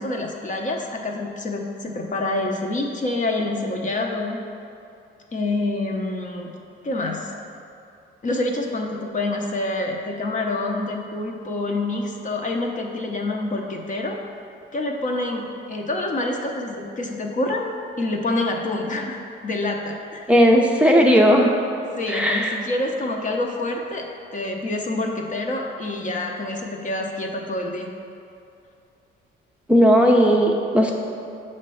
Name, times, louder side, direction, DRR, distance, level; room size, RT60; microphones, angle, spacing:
voice 1, 0.0-4.4 5.3-6.5 6.8-7.3 8.2-14.2 14.7-17.7 18.0-20.3 22.0-24.1 24.3-27.9, left 2 dB, 40° left, 1 dB, 0.8 m, -27 dB
voice 2, 20.3-21.5 22.1-22.6 29.7-30.9, equal, 5° right, -1 dB, 0.6 m, -16 dB
7.3 x 3.2 x 5.5 m, 2.6 s
cardioid pair, 90°, 20 cm